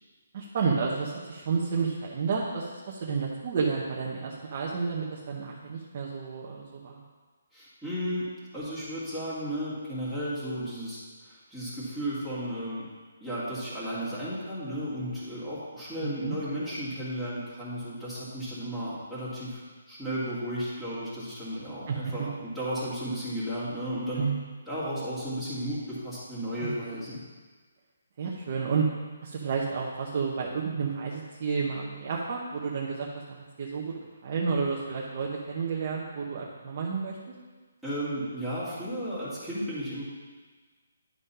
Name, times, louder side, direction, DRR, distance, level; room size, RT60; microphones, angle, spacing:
voice 1, 0.3-7.0 16.0-16.4 21.9-22.1 24.2-24.4 26.6-26.8 28.2-28.9 29.2-34.0 34.2-37.2, right 5 dB, 40° right, -2 dB, 0.9 m, -31 dB
voice 2, 7.5-8.3 8.5-12.9 13.2-24.2 24.7-27.2 37.8-40.0, equal, ahead, -13 dB, 2.0 m, -34 dB
10.5 x 3.8 x 5.5 m, 1.4 s
hypercardioid pair, 170°, 0 cm